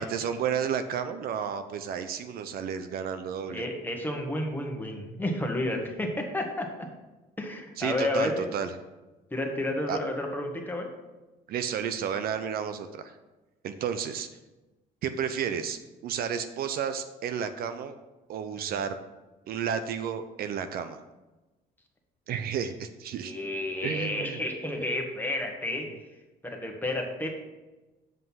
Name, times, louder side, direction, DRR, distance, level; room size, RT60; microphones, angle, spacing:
voice 1, 0.0-3.6 7.8-8.7 9.9-10.0 11.5-13.1 13.6-14.3 15.0-17.9 18.3-19.0 19.5-21.0 22.3-23.3 23.8-24.4, right 7 dB, 60° right, 9 dB, 0.6 m, -32 dB
voice 2, 3.5-6.7 7.4-8.5 9.3-10.9 18.6-18.7 23.2-25.9 26.4-27.4, left 1 dB, 10° left, 2 dB, 1.5 m, -31 dB
7.8 x 5.4 x 5.6 m, 1.1 s
cardioid pair, 110°, 17 cm